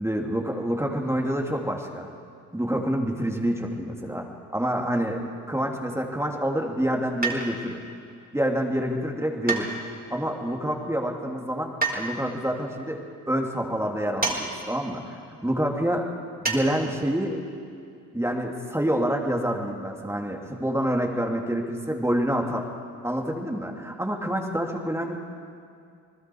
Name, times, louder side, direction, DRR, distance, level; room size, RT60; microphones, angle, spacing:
voice 1, 0.0-2.1 2.5-4.3 4.5-7.8 8.3-9.7 10.1-16.1 16.4-17.4 18.1-22.7 23.0-25.2, equal, 5° right, 1 dB, 3.2 m, -27 dB
sound 1, 7.2-7.8 9.5-10.2 11.8-12.1 14.2-14.4 14.7-14.8 16.4-16.6 17.0-17.1, right 3 dB, 25° right, 4.5 m, -27 dB
29.5 x 19.5 x 4.8 m, 2.4 s
hypercardioid pair, 50°, 39 cm